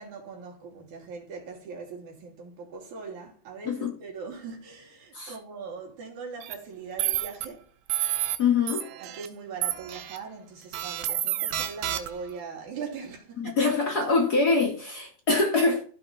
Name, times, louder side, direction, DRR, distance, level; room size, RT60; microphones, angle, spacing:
voice 1, 0.0-7.7 9.0-13.6, right 5 dB, 55° right, 3.8 m, -40 dB
sound 1, 6.4-6.5 7.0-7.5 7.9-8.4 8.7-9.3 9.6-10.2 10.7-12.3, right 13 dB, 75° right, 2.1 m, -29 dB
voice 2, 8.4-8.9 13.4-15.8, left 4 dB, 55° left, 1.0 m, -24 dB
14.0 x 5.2 x 4.2 m
omnidirectional pair, 4.3 m